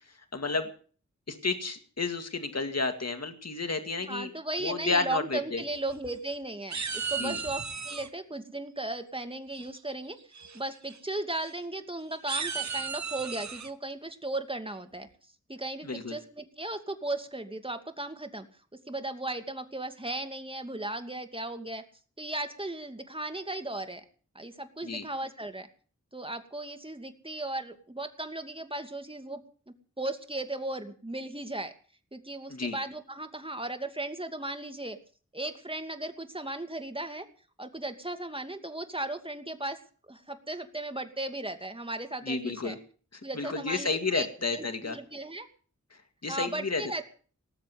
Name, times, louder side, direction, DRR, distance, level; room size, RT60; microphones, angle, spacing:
voice 1, 0.3-0.7 1.3-4.3 4.6-5.6 7.2-7.4 15.8-16.2 24.8-25.0 32.5-32.8 42.3-42.8 43.1-45.0 45.9-46.8, left 3 dB, 60° left, 7 dB, 2.1 m, -31 dB
voice 2, 4.1-10.2 10.5-15.1 15.5-18.5 18.9-21.8 22.2-24.0 24.3-25.7 26.1-29.4 30.0-31.7 32.1-35.0 35.3-37.3 37.6-39.8 40.1-42.8 43.2-44.3 44.5-45.5 46.3-47.0, right 2 dB, 20° right, 7 dB, 2.4 m, -36 dB
sound 1, 5.7-6.3 6.7-8.1 9.5-9.9 10.3-10.6 10.8-11.0 11.4-11.5 12.1-13.7, right 5 dB, 70° right, 1.1 m, -35 dB
19.0 x 7.5 x 9.4 m, 0.43 s
wide cardioid pair, 45°, 29 cm